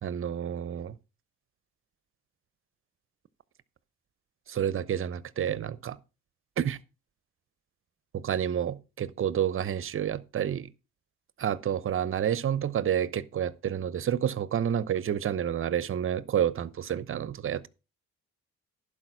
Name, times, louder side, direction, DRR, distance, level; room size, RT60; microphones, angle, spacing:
voice 1, 0.0-0.9 4.5-6.0 6.6-6.8 8.1-10.7 11.4-17.7, right 9 dB, 45° right, 0.7 m, -29 dB
11.0 x 4.9 x 6.1 m
cardioid pair, 90°, 30 cm